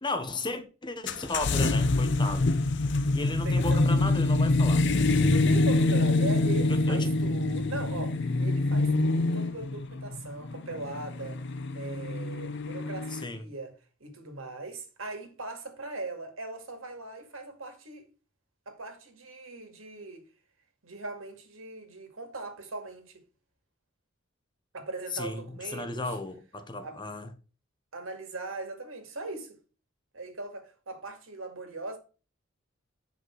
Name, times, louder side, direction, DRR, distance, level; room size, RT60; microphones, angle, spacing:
voice 1, 0.0-2.5 3.1-4.9 6.7-7.1 13.1-13.4 25.1-25.4 25.7-27.3, left 2 dB, 25° left, 1.0 m, -34 dB
sound 1, 1.1-13.2, left 2 dB, 60° left, 0.7 m, -25 dB
voice 2, 3.4-4.1 5.3-11.4 11.7-13.7 14.0-18.1 18.7-20.2 20.8-23.2 24.7-26.1 26.8-27.0 27.9-29.6 30.1-32.0, right 2 dB, 85° right, 2.2 m, -39 dB
8.1 x 5.2 x 4.6 m
head